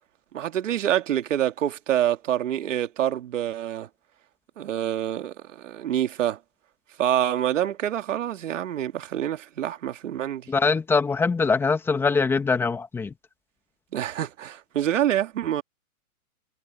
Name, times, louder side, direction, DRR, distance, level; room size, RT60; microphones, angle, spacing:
voice 1, 0.3-3.9 4.6-6.4 7.0-10.5 13.9-15.6, right 11 dB, 60° right, 2.2 m, -26 dB
voice 2, 10.5-13.1, left 4 dB, 5° left, 1.5 m, -23 dB
hypercardioid pair, 160°, 43 cm